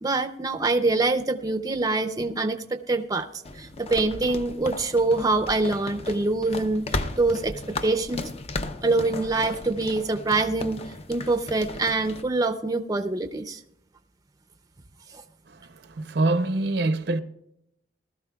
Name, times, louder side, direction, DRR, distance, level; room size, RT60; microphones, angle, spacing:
voice 1, 0.0-3.3 3.5-8.2 8.8-10.8 11.1-13.6, right 3 dB, 20° right, 0.5 m, -25 dB
sound 1, 3.4-12.2, left 2 dB, 35° left, 0.6 m, -35 dB
voice 2, 15.5-17.2, right 2 dB, 65° right, 0.7 m, -25 dB
19.5 x 13.0 x 2.3 m
head